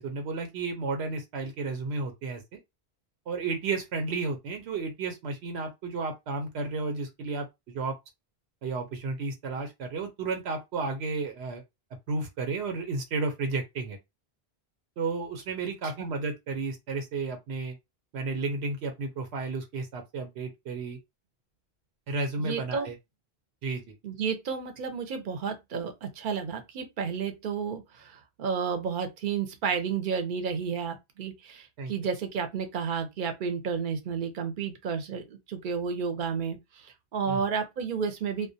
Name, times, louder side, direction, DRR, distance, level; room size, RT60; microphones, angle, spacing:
voice 1, 0.0-2.6 3.3-7.9 8.6-11.6 12.1-14.0 15.0-17.8 18.1-21.0 22.1-22.9 23.6-23.9 31.8-31.9 37.3-37.4, right 3 dB, 85° right, 0.9 m, -32 dB
voice 2, 22.4-22.9 24.0-38.5, right 6 dB, 55° right, 0.7 m, -32 dB
2.2 x 2.1 x 2.6 m
omnidirectional pair, 1.1 m